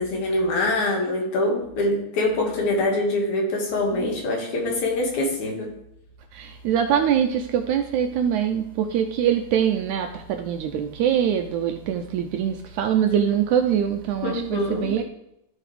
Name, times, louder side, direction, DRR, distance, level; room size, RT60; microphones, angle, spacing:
voice 1, 0.0-5.7 14.2-14.9, left 2 dB, 65° left, 0 dB, 3.0 m, -24 dB
voice 2, 6.3-15.0, right 9 dB, 80° right, 6 dB, 1.8 m, -23 dB
14.5 x 4.9 x 3.3 m, 0.83 s
omnidirectional pair, 3.8 m